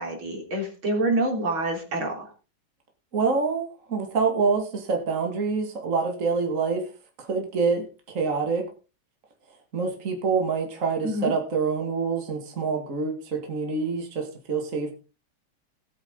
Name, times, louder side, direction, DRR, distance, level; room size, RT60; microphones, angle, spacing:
voice 1, 0.0-2.3 11.0-11.3, right 1 dB, 70° right, 1 dB, 4.3 m, -27 dB
voice 2, 3.1-6.9 7.2-8.7 9.7-14.9, right 4 dB, 40° right, 2 dB, 2.4 m, -26 dB
18.5 x 8.4 x 3.8 m, 0.32 s
omnidirectional pair, 2.3 m